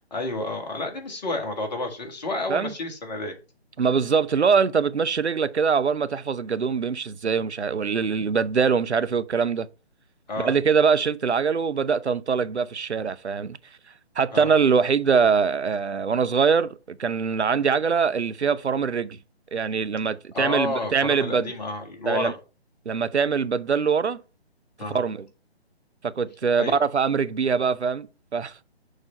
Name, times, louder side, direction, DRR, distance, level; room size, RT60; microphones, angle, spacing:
voice 1, 0.1-3.3 10.3-10.5 14.3-14.5 20.3-22.3 24.8-25.0 26.6-26.8, left 2 dB, 40° left, 1.5 m, -30 dB
voice 2, 3.8-9.7 10.4-13.6 14.2-19.2 19.5-21.5 22.1-22.3 22.9-24.2 24.9-25.3 26.0-28.5, right 6 dB, 90° right, 0.5 m, -23 dB
6.3 x 3.3 x 5.3 m
figure-of-eight pair, 140°, 33 cm